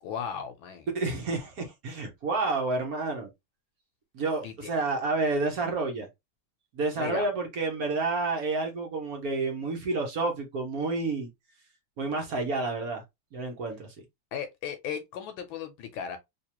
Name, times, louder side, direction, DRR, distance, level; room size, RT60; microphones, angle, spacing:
voice 1, 0.0-0.9 4.4-4.7 7.0-7.2 14.3-16.2, left 7 dB, 75° left, 1.4 m, -36 dB
voice 2, 0.9-3.3 4.1-6.1 6.7-11.3 12.0-13.0 13.3-13.9, right 3 dB, 55° right, 1.0 m, -29 dB
3.5 x 2.9 x 2.8 m
omnidirectional pair, 2.3 m